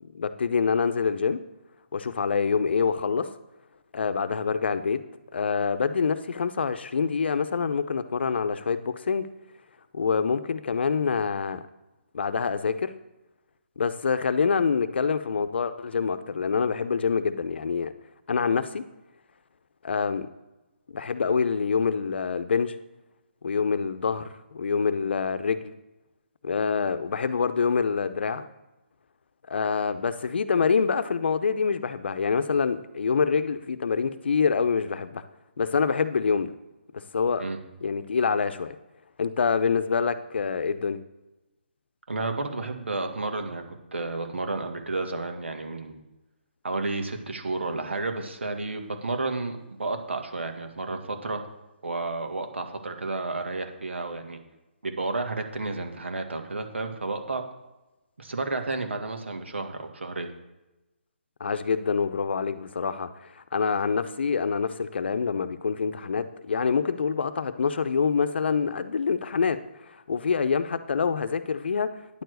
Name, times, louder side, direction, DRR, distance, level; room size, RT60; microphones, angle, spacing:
voice 1, 0.0-1.4 1.9-3.3 3.9-5.0 5.3-9.3 9.9-11.6 12.1-12.9 13.8-17.9 18.3-18.8 19.8-20.3 20.9-22.8 23.4-25.7 26.4-28.5 29.5-35.2 35.6-36.5 36.9-37.4 37.8-38.7 39.2-41.0 61.4-71.9, left 5 dB, 65° left, 12 dB, 0.7 m, -26 dB
voice 2, 42.1-43.6 43.9-46.0 46.6-51.4 51.8-54.4 54.8-57.4 58.2-60.3, right 3 dB, 80° right, 5 dB, 1.8 m, -31 dB
9.8 x 4.6 x 7.9 m, 1.0 s
hypercardioid pair, 150°, 6 cm